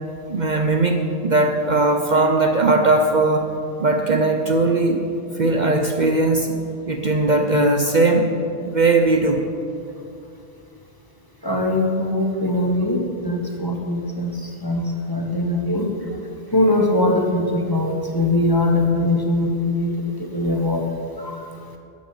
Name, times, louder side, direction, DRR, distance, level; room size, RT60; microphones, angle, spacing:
voice 1, 0.3-3.5 3.8-5.1 5.3-6.6 6.9-8.3 8.6-9.5, right 2 dB, 45° right, 4 dB, 0.9 m, -19 dB
voice 2, 11.4-15.9 16.5-20.9 21.2-21.4, left 1 dB, 20° left, 1 dB, 1.5 m, -21 dB
13.5 x 8.7 x 8.7 m, 2.6 s
omnidirectional pair, 1.1 m